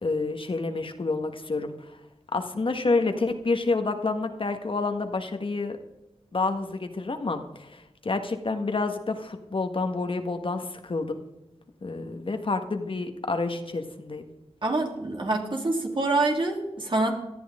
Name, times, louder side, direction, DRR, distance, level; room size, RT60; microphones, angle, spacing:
voice 1, 0.0-2.0 2.3-5.8 6.3-11.2 11.8-14.2, left 3 dB, 50° left, 6 dB, 1.6 m, -28 dB
voice 2, 14.6-17.1, right 2 dB, 45° right, 0 dB, 3.3 m, -26 dB
18.5 x 13.0 x 3.7 m, 0.96 s
wide cardioid pair, 70°, 11 cm